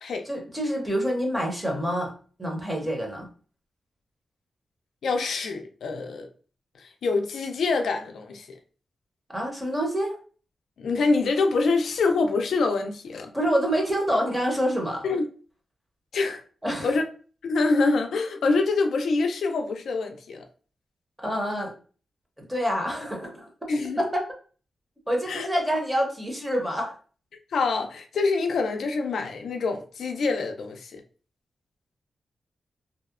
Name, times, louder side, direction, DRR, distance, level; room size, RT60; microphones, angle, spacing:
voice 1, 0.2-2.1 2.4-3.3 9.3-10.2 13.3-15.0 16.6-16.9 21.2-21.7 22.5-23.5 24.0-24.2 25.1-26.9, equal, 10° right, 0.6 m, -27 dB
voice 2, 5.0-6.3 6.8-8.6 10.8-13.3 15.0-15.2 16.1-16.4 16.8-17.0 17.4-20.4 23.7-24.0 25.3-25.5 27.5-31.0, left 3 dB, 80° left, 0.3 m, -25 dB
2.7 x 2.0 x 2.3 m
wide cardioid pair, 155°, 0 cm